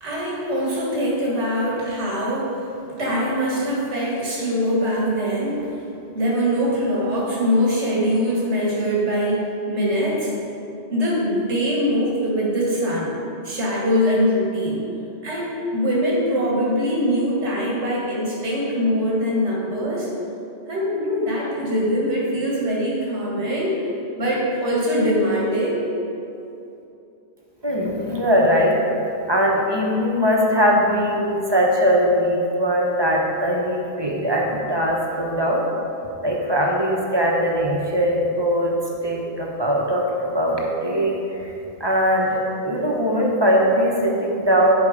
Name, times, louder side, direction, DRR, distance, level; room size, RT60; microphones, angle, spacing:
voice 1, 0.0-2.7 3.0-5.8 6.1-10.3 10.9-13.1 13.4-14.8 15.2-20.1 20.7-23.8 24.2-25.9, equal, 90° right, -4 dB, 1.9 m, -22 dB
voice 2, 27.6-28.8 29.3-35.6 36.2-38.8 39.0-41.5 41.8-44.7, equal, 25° right, -2 dB, 0.9 m, -20 dB
10.5 x 4.6 x 5.0 m, 2.8 s
omnidirectional pair, 1.1 m